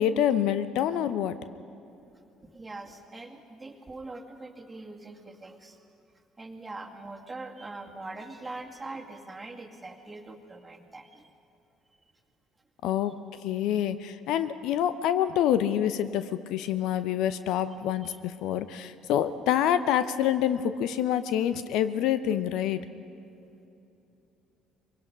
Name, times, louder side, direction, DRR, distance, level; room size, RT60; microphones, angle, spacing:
voice 1, 0.0-1.4 12.8-13.1 13.4-22.8, left 10 dB, 60° left, 13 dB, 0.7 m, -27 dB
voice 2, 2.4-5.8 6.4-11.3 11.9-12.0 18.0-18.2, right 2 dB, 20° right, 2 dB, 2.3 m, -43 dB
23.0 x 22.5 x 5.3 m, 2.7 s
figure-of-eight pair, 55°, 0 cm